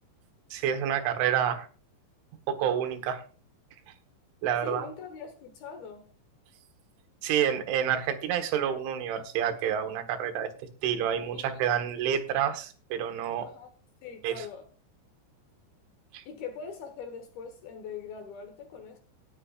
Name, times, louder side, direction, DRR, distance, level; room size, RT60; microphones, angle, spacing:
voice 1, 0.5-1.7 2.5-3.2 4.4-4.9 7.2-10.5 10.8-13.5 14.2-14.4 16.1-16.2, right 9 dB, 70° right, 3.7 m, -28 dB
voice 2, 4.6-6.1 11.3-11.6 13.4-13.7 14.0-14.7 16.3-19.0, left 6 dB, 70° left, 2.5 m, -42 dB
18.0 x 10.0 x 2.5 m
omnidirectional pair, 6.0 m